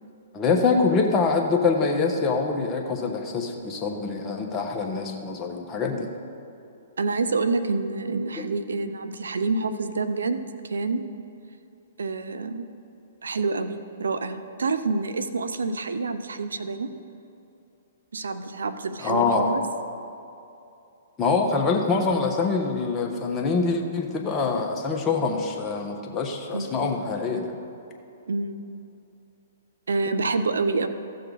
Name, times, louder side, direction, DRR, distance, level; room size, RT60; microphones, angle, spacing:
voice 1, 0.3-6.1 8.4-8.5 19.0-19.5 21.2-27.6, left 4 dB, 20° left, 1 dB, 1.3 m, -25 dB
voice 2, 7.0-11.0 12.0-12.7 13.2-16.9 18.1-19.6 26.5-26.8 28.3-28.6 29.9-30.9, right 3 dB, 85° right, 11 dB, 0.6 m, -27 dB
15.0 x 6.7 x 4.1 m, 2.7 s
hypercardioid pair, 130°, 0 cm